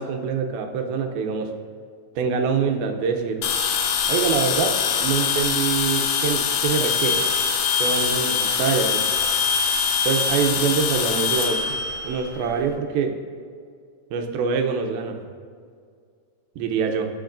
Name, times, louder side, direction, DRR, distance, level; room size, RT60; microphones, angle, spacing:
voice 1, 0.0-1.5 2.2-3.4 4.1-4.7 5.0-7.2 7.8-9.0 10.0-11.8 12.0-13.2 14.1-15.2 16.6-17.1, right 6 dB, 80° right, 5 dB, 2.6 m, -24 dB
sound 1, 3.4-12.7, left 6 dB, 80° left, 1.7 m, -23 dB
20.0 x 6.8 x 2.6 m, 2.1 s
omnidirectional pair, 4.4 m